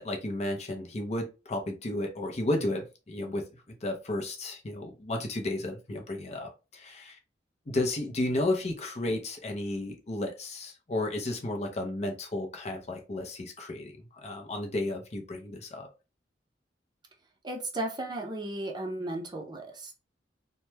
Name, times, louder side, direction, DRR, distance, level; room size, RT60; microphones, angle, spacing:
voice 1, 0.0-7.2 7.7-15.9, left 1 dB, 40° left, 0.6 m, -33 dB
voice 2, 17.4-19.9, right 1 dB, 25° right, 0.6 m, -35 dB
3.0 x 2.2 x 3.2 m
head